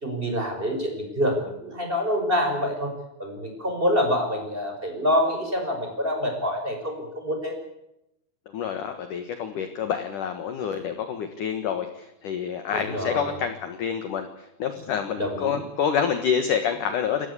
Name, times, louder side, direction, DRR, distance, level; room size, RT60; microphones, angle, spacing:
voice 1, 0.0-2.9 3.2-7.5 12.7-13.3 15.2-15.6, equal, 10° right, 3 dB, 5.3 m, -26 dB
voice 2, 8.5-14.3 14.6-17.3, left 7 dB, 65° left, 8 dB, 2.1 m, -27 dB
29.0 x 14.5 x 8.4 m, 0.85 s
omnidirectional pair, 5.7 m